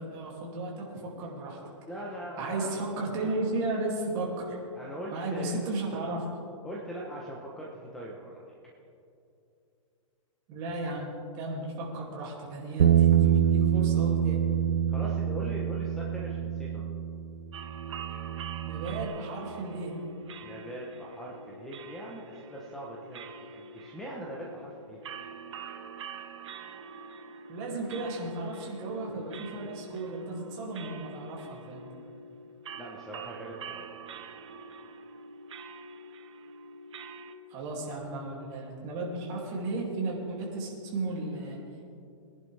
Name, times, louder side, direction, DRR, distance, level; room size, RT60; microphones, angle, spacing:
voice 1, 0.0-1.6 2.4-4.6 5.1-6.2 10.5-14.4 18.6-19.9 27.5-31.8 37.5-41.6, right 2 dB, 25° right, -2 dB, 2.6 m, -34 dB
voice 2, 1.9-2.9 3.2-3.3 4.7-5.7 6.6-8.4 14.9-16.9 20.4-25.0 32.8-33.9, right 1 dB, 5° left, -4 dB, 0.9 m, -41 dB
Bass guitar, 12.8-19.0, right 10 dB, 90° right, 0.6 m, -26 dB
sound 1, 17.5-37.3, right 4 dB, 60° right, 1.2 m, -45 dB
22.5 x 10.5 x 3.4 m, 2.6 s
hypercardioid pair, 165°, 17 cm